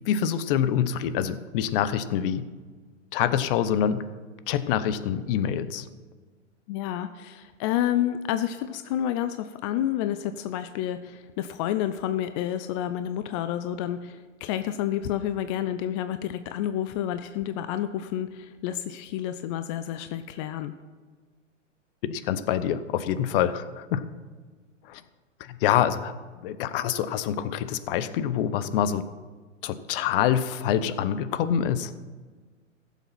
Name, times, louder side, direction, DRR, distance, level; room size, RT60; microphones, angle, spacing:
voice 1, 0.0-2.4 3.1-4.1 4.5-5.9 22.0-24.1 24.8-25.0 25.4-26.1 26.4-29.1 29.6-31.9, left 9 dB, 45° left, 14 dB, 0.9 m, -26 dB
voice 2, 6.7-20.7, left 11 dB, 25° left, 10 dB, 0.3 m, -29 dB
15.5 x 7.2 x 5.8 m, 1.4 s
hypercardioid pair, 110°, 38 cm